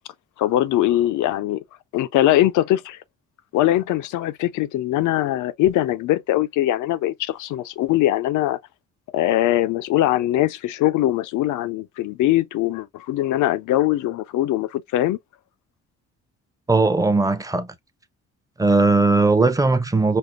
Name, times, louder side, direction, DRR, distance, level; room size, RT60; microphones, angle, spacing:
voice 1, 0.4-1.6 1.9-3.0 3.5-8.6 9.1-15.2, left 14 dB, 80° left, 0.5 m, -21 dB
voice 2, 16.7-17.7 18.6-20.2, right 3 dB, 10° right, 0.6 m, -18 dB
5.3 x 2.0 x 2.3 m
cardioid pair, 90°, 30 cm